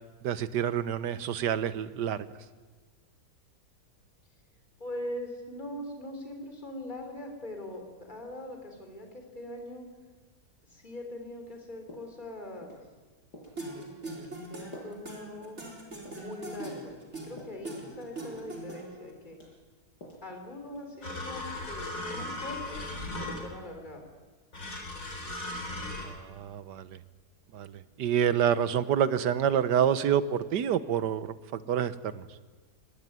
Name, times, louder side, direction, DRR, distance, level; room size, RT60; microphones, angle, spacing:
voice 1, 0.2-2.3 26.0-27.0 27.5-32.3, right 9 dB, 80° right, 14 dB, 1.6 m, -28 dB
voice 2, 4.8-9.9 10.7-12.8 13.7-15.6 16.2-19.4 20.2-22.8 23.1-24.0, left 1 dB, 25° left, 3 dB, 3.8 m, -42 dB
sound 1, 11.5-11.6 11.9-12.3 12.6-12.9 13.3-13.6 14.1-14.2 14.7-15.0 15.4-15.6 16.1-16.4 16.7-17.6 18.0-18.3 18.7-19.0 19.3-20.3 20.6-21.0, equal, 75° left, 6.7 m, -50 dB
sound 2, 13.6-19.1, right 2 dB, 40° right, 4.6 m, -41 dB
sound 3, 21.0-23.7 24.5-26.1, left 2 dB, 50° left, 4.4 m, -37 dB
23.0 x 19.5 x 9.5 m, 1.4 s
omnidirectional pair, 1.8 m